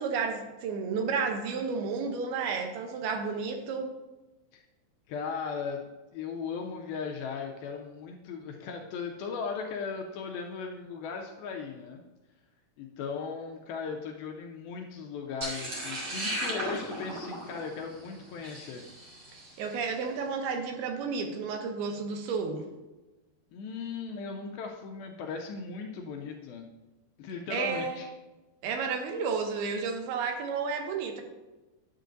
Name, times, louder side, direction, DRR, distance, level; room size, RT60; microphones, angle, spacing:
voice 1, 0.0-3.9 19.6-22.7 27.5-28.0 28.6-31.2, right 5 dB, 80° right, 4 dB, 2.6 m, -32 dB
voice 2, 5.1-5.9 6.1-12.0 12.8-18.8 23.5-26.7 27.2-28.1, left 5 dB, 80° left, 2 dB, 2.2 m, -37 dB
sound 1, 15.4-19.7, right 1 dB, 55° right, 1.6 m, -36 dB
10.5 x 7.4 x 2.6 m, 1.1 s
omnidirectional pair, 4.7 m